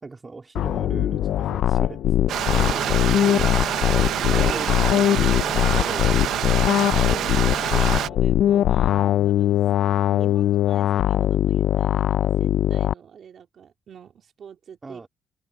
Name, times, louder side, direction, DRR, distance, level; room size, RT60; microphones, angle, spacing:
voice 1, 0.0-2.8 3.3-3.5 4.3-6.3 14.8-15.1, right 3 dB, 25° right, 2.9 m, -38 dB
sound 1, 0.5-12.9, left 11 dB, 75° left, 0.5 m, -21 dB
Stream, 2.3-8.1, right 11 dB, 75° right, 0.8 m, -26 dB
voice 2, 2.6-3.5 4.2-5.8 7.1-9.0 9.2-9.6 10.1-15.1, right 7 dB, 55° right, 2.6 m, -42 dB
open air
cardioid pair, 90°, 0 cm